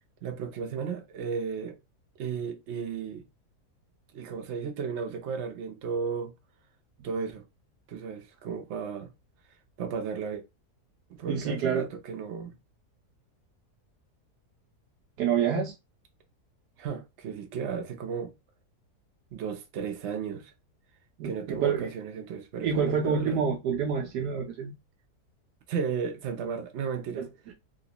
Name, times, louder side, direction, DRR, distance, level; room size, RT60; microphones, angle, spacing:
voice 1, 0.2-1.8 2.2-3.2 4.1-6.3 7.0-7.4 7.9-9.1 9.8-10.4 11.1-12.5 16.8-18.3 19.3-20.5 21.2-23.4 25.7-27.2, right 6 dB, 55° right, 0.8 m, -34 dB
voice 2, 11.3-11.9 15.2-15.7 21.2-21.9 22.6-24.7 27.2-27.5, right 6 dB, 80° right, 1.2 m, -28 dB
3.0 x 2.9 x 2.8 m
omnidirectional pair, 1.7 m